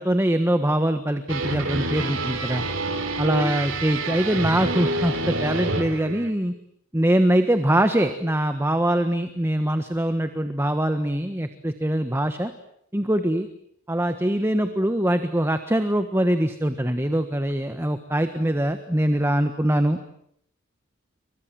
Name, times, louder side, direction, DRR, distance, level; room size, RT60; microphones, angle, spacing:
voice 1, 0.0-2.6 3.2-6.5 6.9-12.5 12.9-13.5 13.9-20.1, right 1 dB, 10° right, 8 dB, 1.4 m, -23 dB
sound 1, 1.3-6.3, right 2 dB, 70° right, 3.5 m, -27 dB
29.5 x 24.5 x 7.6 m, 0.69 s
head